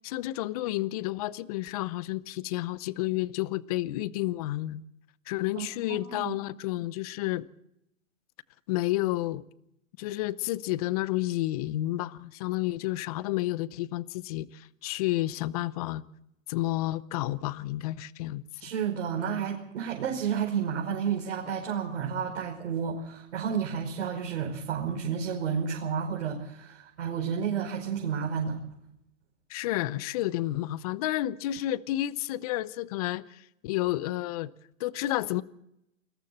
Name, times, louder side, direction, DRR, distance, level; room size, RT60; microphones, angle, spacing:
voice 1, 0.0-4.8 5.3-7.5 8.7-9.4 10.0-16.0 16.5-18.7 29.5-34.5 34.8-35.4, left 16 dB, 30° left, 0.7 m, -31 dB
voice 2, 5.5-6.3 18.6-28.6, right 7 dB, 55° right, 5.5 m, -31 dB
29.0 x 21.5 x 4.3 m
hypercardioid pair, 140°, 38 cm